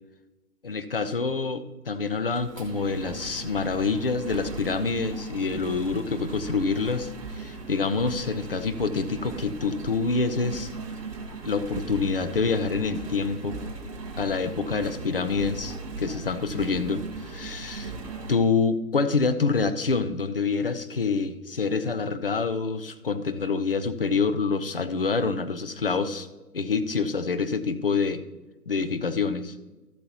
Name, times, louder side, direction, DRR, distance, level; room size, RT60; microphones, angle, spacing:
voice 1, 0.6-10.7 11.4-13.6 14.2-17.9 18.3-26.3 26.5-28.2 28.7-29.5, left 4 dB, 40° left, 11 dB, 0.4 m, -27 dB
Engine, 2.3-18.3, right 4 dB, 20° right, 0.9 m, -38 dB
13.0 x 7.8 x 2.9 m, 1.1 s
figure-of-eight pair, 145°, 47 cm